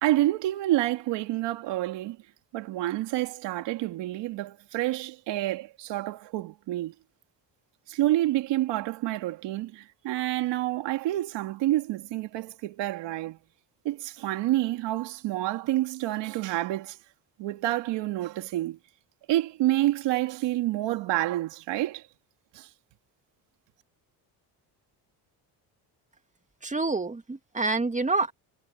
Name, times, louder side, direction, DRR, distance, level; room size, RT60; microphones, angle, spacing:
voice 1, 0.0-2.2 2.5-6.9 7.9-13.4 13.8-17.0 17.4-18.8 19.3-22.0 22.5-22.7, right 15 dB, 85° right, 2.8 m, -28 dB
voice 2, 26.6-28.3, right 3 dB, 15° right, 2.3 m, -27 dB
cardioid pair, 90°, 42 cm